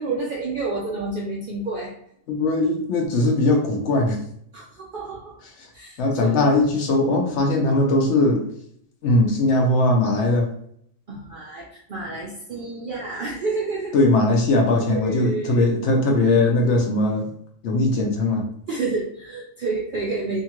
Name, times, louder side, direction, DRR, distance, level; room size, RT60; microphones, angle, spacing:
voice 1, 0.0-1.9 4.5-5.3 5.7-6.7 11.1-14.0 14.9-15.7 18.7-20.4, right 3 dB, 65° right, -3 dB, 0.5 m, -29 dB
voice 2, 2.3-4.2 6.0-8.4 9.0-10.5 13.9-17.3 17.6-18.4, left 2 dB, 65° left, 1 dB, 0.8 m, -20 dB
2.8 x 2.3 x 2.8 m, 0.69 s
omnidirectional pair, 1.4 m